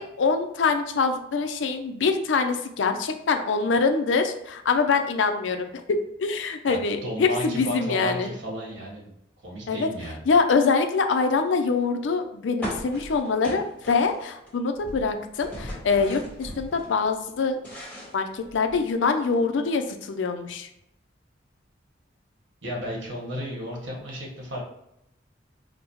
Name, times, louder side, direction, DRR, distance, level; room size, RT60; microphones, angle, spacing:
voice 1, 0.0-5.7 6.2-8.3 9.7-9.9 10.3-17.6 18.1-20.7, left 4 dB, 75° left, 7 dB, 0.4 m, -24 dB
voice 2, 6.7-9.1 9.4-10.2 22.6-24.6, equal, 80° right, -2 dB, 1.4 m, -33 dB
sound 1, 12.6-14.5 14.8-16.9 17.3-18.9, equal, 10° left, 1.2 m, -38 dB
5.0 x 2.0 x 3.0 m, 0.81 s
head